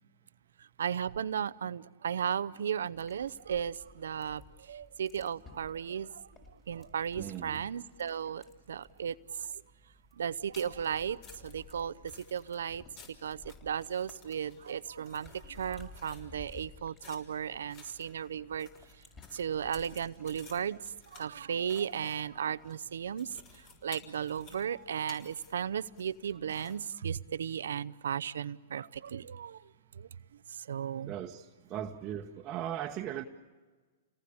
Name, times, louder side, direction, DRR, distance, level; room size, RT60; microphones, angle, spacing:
voice 1, 0.8-4.4 4.7-6.1 6.7-8.4 8.7-9.1 10.2-11.2 11.4-11.9 12.3-12.8 13.2-15.3 15.6-18.7 19.3-20.8 21.1-23.3 23.8-29.6 30.7-31.1, right 8 dB, 80° right, 17 dB, 0.7 m, -35 dB
sound 1, 2.9-21.1, left 3 dB, 25° left, 5.2 m, -56 dB
voice 2, 7.1-7.6 31.0-33.2, right 10 dB, 30° right, 2 dB, 1.2 m, -38 dB
sound 2, 10.2-26.9, left 5 dB, 40° left, 5.9 m, -57 dB
29.5 x 19.0 x 8.7 m, 1.4 s
hypercardioid pair, 120°, 0 cm